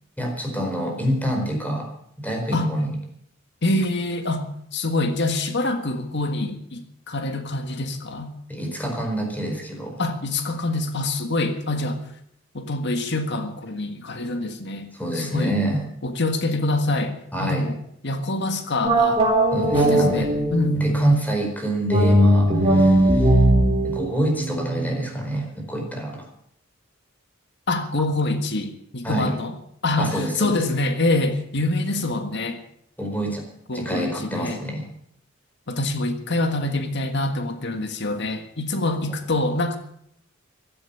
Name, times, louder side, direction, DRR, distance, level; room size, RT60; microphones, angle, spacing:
voice 1, 0.2-1.9 2.2-3.0 8.5-10.0 14.9-15.8 17.3-17.6 19.5-20.3 20.7-23.4 23.8-26.3 29.0-29.3 30.0-30.6 33.0-33.4 33.7-34.9, right 1 dB, 10° left, 2 dB, 4.6 m, -26 dB
voice 2, 3.6-4.4 4.7-8.3 10.0-12.0 12.5-14.9 15.1-15.6 16.0-17.8 18.0-19.2 19.7-20.8 22.5-22.9 27.7-29.5 29.8-32.6 33.7-34.6 35.7-39.8, left 2 dB, 60° left, 7 dB, 1.7 m, -25 dB
sound 1, 18.8-21.1 21.9-25.2, right 1 dB, 25° right, 4.0 m, -19 dB
16.0 x 12.0 x 6.9 m, 0.70 s
head